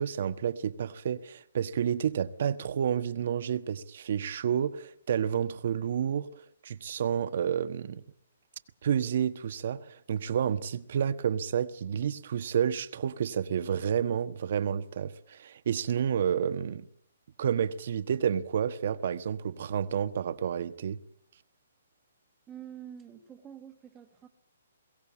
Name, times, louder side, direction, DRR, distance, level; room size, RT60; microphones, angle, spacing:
voice 1, 0.0-6.3 6.6-8.0 8.8-16.9 17.4-21.0, right 8 dB, 50° right, 1.3 m, -30 dB
voice 2, 22.5-24.3, right 9 dB, 10° right, 1.6 m, -47 dB
22.5 x 17.0 x 8.5 m
hypercardioid pair, 165°, 0 cm